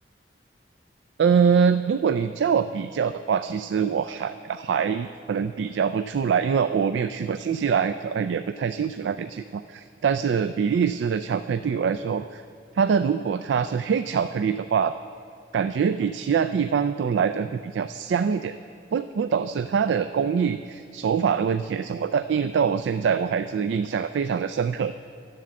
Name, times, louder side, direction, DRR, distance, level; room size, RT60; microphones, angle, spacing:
voice 1, 1.2-12.4 12.8-14.9 15.5-18.5 18.9-24.9, right 6 dB, 85° right, 11 dB, 0.3 m, -24 dB
11.5 x 7.6 x 7.5 m, 2.4 s
head